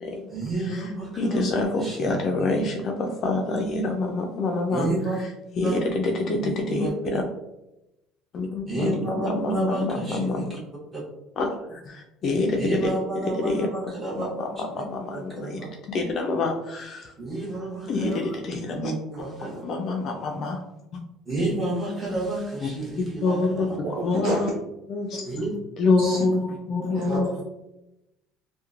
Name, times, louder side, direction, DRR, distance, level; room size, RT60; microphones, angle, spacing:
voice 1, 0.3-1.5 1.7-2.6 4.7-5.2 5.6-5.8 6.4-6.9 8.7-10.6 10.9-11.0 12.6-14.3 14.6-14.7 15.1-15.7 17.2-18.4 18.7-19.6 21.3-23.8 25.2-25.6 27.0-27.3, right 2 dB, 20° right, -5 dB, 0.9 m, -30 dB
voice 2, 1.2-4.9 5.6-7.2 8.3-10.6 11.4-12.8 13.4-13.7 14.2-15.6 15.9-17.1 17.9-18.9 19.4-20.6 23.2-23.7 24.0-24.5 24.9-25.3 25.8-27.3, left 3 dB, 40° left, 2 dB, 0.3 m, -26 dB
voice 3, 23.8-24.5 26.0-26.2 26.8-27.4, right 2 dB, 60° right, -4 dB, 0.5 m, -30 dB
2.9 x 2.1 x 2.4 m, 0.91 s
cardioid pair, 150°, 0 cm